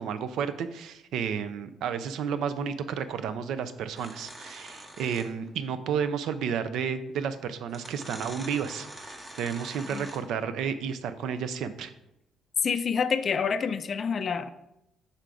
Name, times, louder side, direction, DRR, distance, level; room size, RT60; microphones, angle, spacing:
voice 1, 0.0-11.9, right 7 dB, 70° right, 12 dB, 0.4 m, -32 dB
sound 1, 4.0-5.5 6.8-6.9 7.7-10.4, right 1 dB, 15° right, 0.8 m, -44 dB
voice 2, 12.6-14.5, left 6 dB, 35° left, 11 dB, 0.3 m, -27 dB
5.6 x 3.8 x 4.7 m, 0.87 s
cardioid pair, 145°, 0 cm